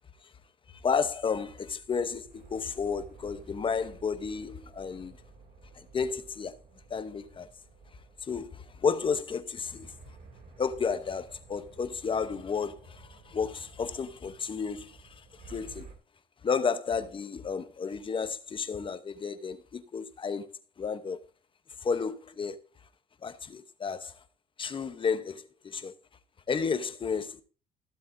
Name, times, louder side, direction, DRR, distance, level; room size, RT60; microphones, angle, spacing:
sound 1, 0.7-15.9, right 4 dB, 55° right, 2.5 m, -53 dB
voice 1, 0.8-5.2 5.7-6.6 6.9-7.5 8.2-9.9 10.6-15.9 16.4-21.2 21.8-22.6 23.2-24.2 24.6-25.9 26.5-27.4, left 5 dB, 30° left, 0.8 m, -32 dB
14.5 x 7.5 x 2.6 m
cardioid pair, 110°, 17 cm